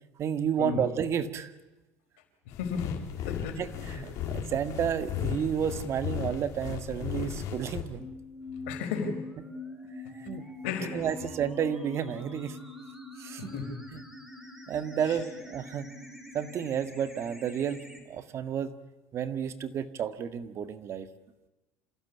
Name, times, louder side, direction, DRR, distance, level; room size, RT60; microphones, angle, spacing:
voice 1, 0.2-1.5 3.6-8.1 10.2-10.4 10.9-12.6 13.2-13.5 13.9-14.0 14.7-15.9 16.3-17.8 18.1-18.7 19.1-21.1, right 8 dB, 45° right, 10 dB, 1.8 m, -31 dB
voice 2, 2.5-3.0 3.3-3.6 3.9-4.0 8.7-9.2 10.6-11.1 13.4-13.7 15.1-15.2, left 6 dB, 85° left, 5 dB, 4.8 m, -34 dB
sound 1, 2.5-7.8, left 9 dB, 55° left, 3.9 m, -36 dB
sound 2, 8.0-18.0, left 2 dB, 5° right, 4.8 m, -44 dB
27.5 x 16.0 x 8.5 m, 1.0 s
supercardioid pair, 100°, 6 cm